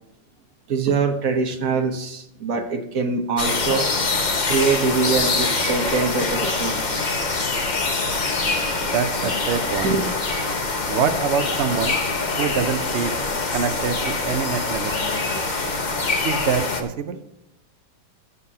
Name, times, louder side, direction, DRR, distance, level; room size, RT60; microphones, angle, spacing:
voice 1, 0.7-3.9 4.4-7.2 9.8-10.0 15.3-15.4, right 4 dB, 45° right, 3 dB, 1.4 m, -23 dB
sound 1, 3.4-16.8, left 3 dB, 50° left, 0.5 m, -24 dB
voice 2, 8.8-10.0 10.9-12.0 12.4-13.2 13.5-15.1 16.2-17.2, right 6 dB, 85° right, 9 dB, 0.6 m, -25 dB
16.0 x 6.9 x 2.9 m, 0.86 s
omnidirectional pair, 2.3 m